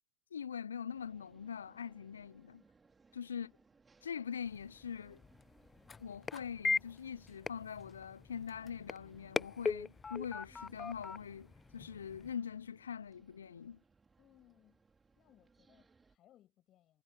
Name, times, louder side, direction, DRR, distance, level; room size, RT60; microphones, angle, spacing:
voice 1, 0.3-2.6 3.1-3.5 4.0-5.2 6.0-13.8, left 7 dB, 75° left, 0.7 m, -43 dB
sound 1, 0.9-16.2, right 4 dB, 15° right, 4.3 m, -68 dB
voice 2, 3.3-3.6 14.2-14.8 15.2-17.0, left 13 dB, 40° left, 7.1 m, -65 dB
sound 2, 4.5-12.3, left 5 dB, 20° left, 0.3 m, -41 dB
figure-of-eight pair, 80°, 0 cm